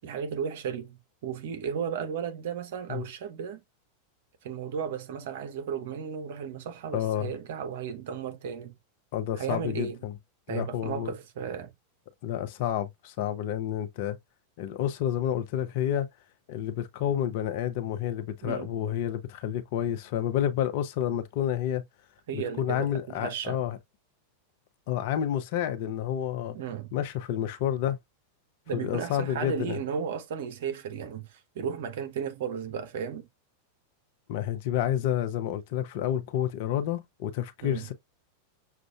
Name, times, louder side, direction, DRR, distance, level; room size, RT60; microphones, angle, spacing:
voice 1, 0.0-3.6 4.4-8.7 9.4-10.0 10.5-11.7 18.4-18.8 22.3-23.6 26.5-26.9 28.7-33.3 37.6-37.9, right 7 dB, 55° right, 0.9 m, -34 dB
voice 2, 6.9-7.3 9.1-10.1 10.5-11.1 12.2-14.2 14.6-16.1 16.5-21.8 22.3-23.8 24.9-26.6 26.9-28.0 28.7-29.8 34.3-37.9, left 10 dB, 50° left, 0.7 m, -29 dB
6.5 x 2.5 x 2.3 m
figure-of-eight pair, 90°, 0 cm